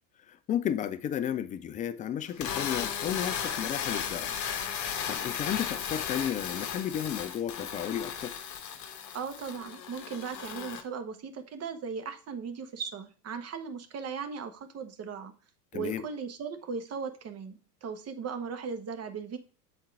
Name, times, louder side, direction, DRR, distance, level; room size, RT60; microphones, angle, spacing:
voice 1, 0.5-4.3 4.8-8.3 15.7-16.1, left 9 dB, 15° left, 0.4 m, -33 dB
sound 1, 2.3-10.8, left 8 dB, 35° left, 1.3 m, -35 dB
voice 2, 9.1-15.3 15.7-19.4, right 6 dB, 30° right, 1.3 m, -37 dB
7.8 x 4.3 x 4.6 m
hypercardioid pair, 90°, 49 cm